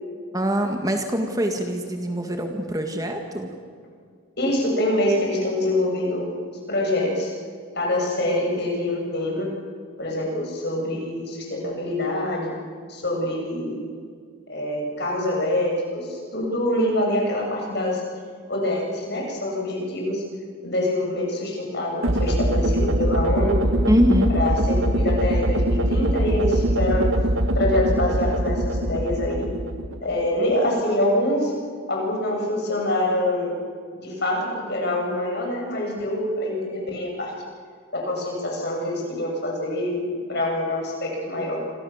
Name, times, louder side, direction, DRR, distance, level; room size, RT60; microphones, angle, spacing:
voice 1, 0.3-3.5 23.9-24.4, equal, 15° right, 4 dB, 1.9 m, -23 dB
voice 2, 4.4-6.3 6.7-7.3 7.7-9.5 10.0-12.5 12.9-13.8 14.5-18.0 18.5-20.2 20.6-23.6 24.3-27.1 27.5-29.5 30.0-31.5 31.9-33.6 34.0-37.3 37.9-41.6, left 1 dB, 50° left, 0 dB, 7.8 m, -25 dB
sound 1, 22.0-30.2, right 1 dB, 75° right, 1.7 m, -22 dB
28.0 x 26.0 x 7.3 m, 2.1 s
head